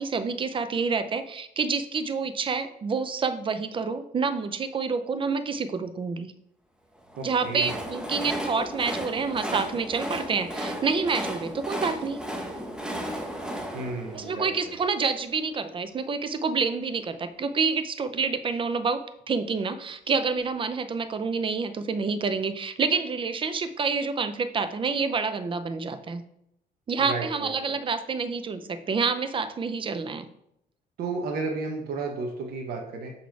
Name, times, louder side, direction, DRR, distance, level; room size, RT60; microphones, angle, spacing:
voice 1, 0.0-6.3 7.2-12.2 14.1-26.2 26.9-30.3, right 5 dB, 30° right, 11 dB, 0.6 m, -28 dB
Train, 7.1-15.2, equal, 5° right, 0.9 m, -35 dB
voice 2, 7.2-7.8 13.7-14.8 27.0-27.7 31.0-33.1, right 3 dB, 65° right, 2 dB, 1.1 m, -33 dB
6.0 x 4.1 x 4.6 m, 0.77 s
cardioid pair, 110°, 17 cm